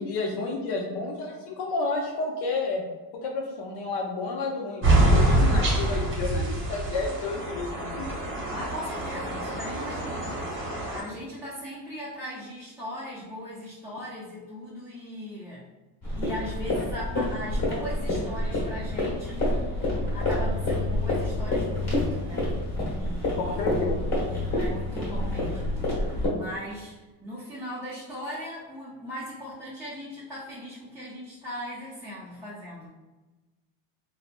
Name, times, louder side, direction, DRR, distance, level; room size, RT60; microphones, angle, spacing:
voice 1, 0.0-2.8 3.2-8.1 23.4-24.0, left 3 dB, 60° left, 0 dB, 0.6 m, -31 dB
sound 1, 4.8-11.0, right 1 dB, 25° right, 0.8 m, -25 dB
voice 2, 8.5-15.6 16.2-22.5 23.0-23.6 24.3-25.8 26.3-27.0 27.2-32.9, equal, 5° right, -10 dB, 0.4 m, -39 dB
sound 2, 16.0-26.3, left 1 dB, 35° left, 1.2 m, -28 dB
3.1 x 2.0 x 2.5 m, 1.2 s
supercardioid pair, 105°, 46 cm